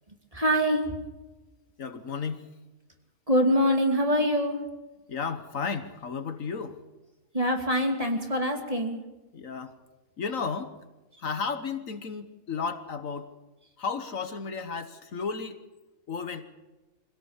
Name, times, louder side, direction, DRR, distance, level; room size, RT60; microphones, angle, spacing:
voice 1, 0.3-0.9 3.3-4.6 7.3-9.0, equal, 25° right, 3 dB, 2.7 m, -24 dB
voice 2, 1.8-2.5 5.1-6.8 9.3-9.7 10.2-10.8 11.2-13.3 13.8-15.6 16.1-16.4, left 5 dB, 65° left, 9 dB, 1.6 m, -33 dB
24.5 x 17.0 x 7.3 m, 1.1 s
omnidirectional pair, 1.5 m